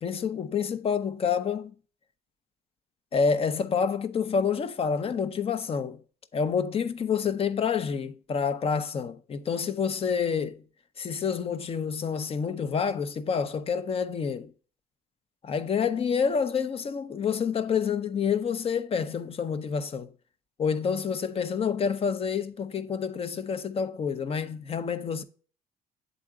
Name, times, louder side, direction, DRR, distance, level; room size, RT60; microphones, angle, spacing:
voice 1, 0.0-1.7 3.1-6.0 6.3-10.6 11.0-14.5 15.4-20.1 20.6-25.2, left 6 dB, 35° left, 0.6 m, -28 dB
7.7 x 3.9 x 3.5 m
cardioid pair, 110°, 17 cm